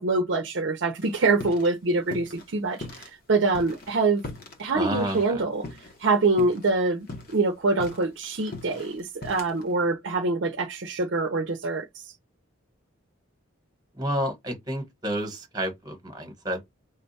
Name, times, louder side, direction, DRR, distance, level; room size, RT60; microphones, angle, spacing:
voice 1, 0.0-4.2 4.6-5.6 6.0-7.1 7.3-11.9, right 3 dB, 60° right, 0.6 m, -25 dB
sound 1, 1.0-1.7 2.0-3.1 3.5-6.1 6.4-6.7 7.0-9.7, left 2 dB, 45° left, 0.9 m, -40 dB
voice 2, 4.7-5.4 14.0-16.6, equal, 20° right, 1.1 m, -30 dB
3.4 x 2.3 x 4.1 m
head